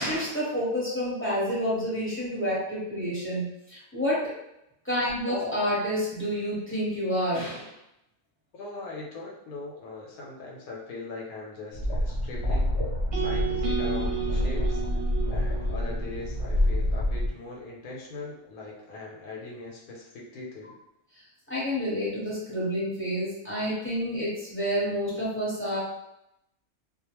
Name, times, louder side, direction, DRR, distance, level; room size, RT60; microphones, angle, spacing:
voice 1, 0.0-4.2 4.8-7.7 21.5-25.8, equal, 10° left, -9 dB, 0.7 m, -29 dB
voice 2, 8.5-12.7 13.2-14.8 15.3-20.8, left 3 dB, 75° left, -3 dB, 1.0 m, -40 dB
sound 1, 11.7-17.3, left 1 dB, 60° left, 0.8 m, -27 dB
sound 2, 13.1-17.3, right 5 dB, 55° right, 0.7 m, -33 dB
2.4 x 2.2 x 2.9 m, 0.84 s
omnidirectional pair, 1.6 m